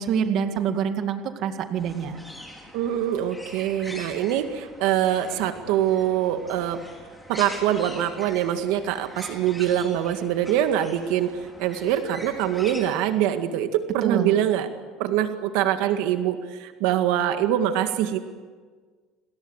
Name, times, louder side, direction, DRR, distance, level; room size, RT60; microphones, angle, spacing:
voice 1, 0.0-2.2 14.0-14.3, right 8 dB, 45° right, 7 dB, 2.1 m, -26 dB
sound 1, 1.7-12.9, left 1 dB, 5° left, 4.9 m, -43 dB
voice 2, 2.7-6.8 7.3-11.3 11.6-14.7 15.0-18.2, right 11 dB, 75° right, 7 dB, 1.9 m, -24 dB
29.0 x 21.5 x 8.1 m, 1.5 s
cardioid pair, 160°, 0 cm